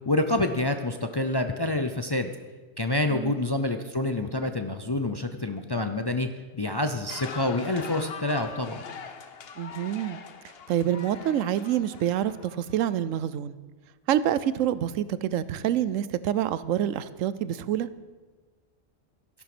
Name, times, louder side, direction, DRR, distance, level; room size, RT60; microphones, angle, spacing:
voice 1, 0.1-2.3 2.8-6.3 6.5-8.9, left 2 dB, 35° left, 7 dB, 0.4 m, -27 dB
sound 1, 7.1-12.7, left 6 dB, 55° left, 1.0 m, -42 dB
voice 2, 9.6-10.2 10.7-13.6 14.1-17.9, right 10 dB, 80° right, 16 dB, 1.0 m, -27 dB
13.5 x 11.0 x 6.1 m, 1.4 s
omnidirectional pair, 1.3 m